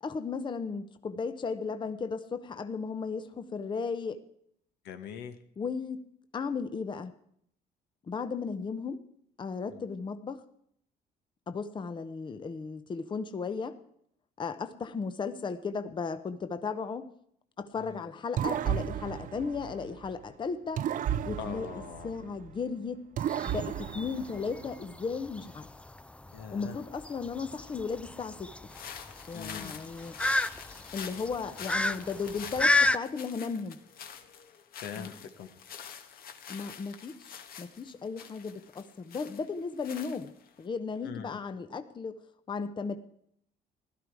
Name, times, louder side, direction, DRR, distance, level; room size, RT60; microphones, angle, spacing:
voice 1, 0.0-4.2 5.6-6.0 6.3-7.1 8.1-9.0 9.4-10.4 11.5-13.8 14.4-17.1 17.6-20.8 21.3-21.7 22.0-23.0 23.5-25.7 26.5-28.5 29.3-30.2 30.9-33.8 35.0-35.1 36.5-40.3 40.6-42.2 42.5-43.0, left 5 dB, 30° left, 10 dB, 0.8 m, -35 dB
voice 2, 4.8-5.4 9.7-9.8 17.8-18.0 21.4-22.1 26.3-26.8 29.3-29.8 34.8-35.5 41.0-41.4, left 8 dB, 75° left, 8 dB, 1.5 m, -42 dB
sound 1, 18.4-20.3 20.8-22.6 23.2-24.9, right 10 dB, 50° right, 0.5 m, -34 dB
sound 2, 23.2-33.0, left 2 dB, 5° left, 0.5 m, -31 dB
sound 3, 28.7-40.6, left 7 dB, 60° left, 1.5 m, -46 dB
16.0 x 12.0 x 4.8 m, 0.69 s
cardioid pair, 110°, 17 cm